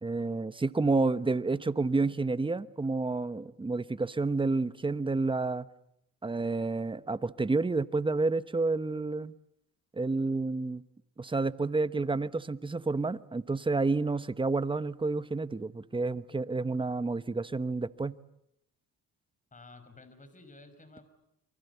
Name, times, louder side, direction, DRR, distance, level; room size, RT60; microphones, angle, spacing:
voice 1, 0.0-5.7 6.2-9.3 9.9-10.8 11.2-18.2, right 3 dB, 15° right, 1.0 m, -30 dB
voice 2, 19.5-21.1, left 3 dB, 25° left, 5.4 m, -52 dB
28.5 x 24.0 x 8.3 m
cardioid pair, 90°, 30 cm